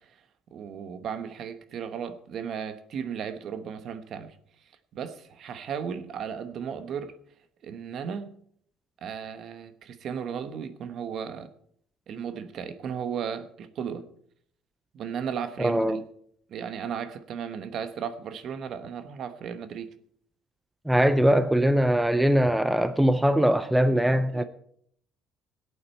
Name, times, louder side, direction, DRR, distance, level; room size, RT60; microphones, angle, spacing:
voice 1, 0.5-4.3 4.9-7.1 7.6-8.3 9.0-11.5 12.1-14.1 14.9-16.0 16.5-19.9 24.3-24.4, right 7 dB, 50° right, 1.0 m, -35 dB
voice 2, 15.6-16.0 20.9-24.4, equal, 5° right, 0.4 m, -21 dB
18.0 x 8.5 x 4.5 m
cardioid pair, 145°, 0 cm